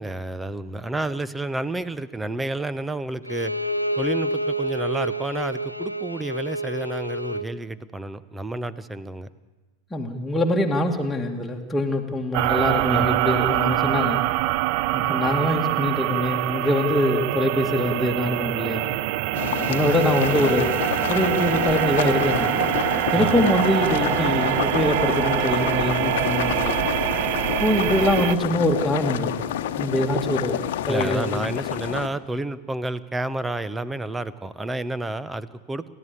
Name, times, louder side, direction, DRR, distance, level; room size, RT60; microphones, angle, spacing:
voice 1, 0.0-3.5 4.0-9.3 12.9-13.2 23.1-23.3 30.9-35.9, right 2 dB, 10° right, 16 dB, 1.0 m, -30 dB
Bowed string instrument, 3.2-7.5, equal, 90° left, 0.9 m, -28 dB
voice 2, 9.9-14.2 14.9-18.9 19.7-20.8 21.1-22.6 23.1-26.9 27.6-29.3 29.8-30.6 30.9-31.4, left 1 dB, 5° left, 0 dB, 2.3 m, -24 dB
sound 1, 12.3-28.4, right 16 dB, 45° right, 0.6 m, -24 dB
sound 2, 19.3-32.1, left 11 dB, 55° left, 1.3 m, -28 dB
29.0 x 13.0 x 8.7 m, 1.2 s
figure-of-eight pair, 90°, 0 cm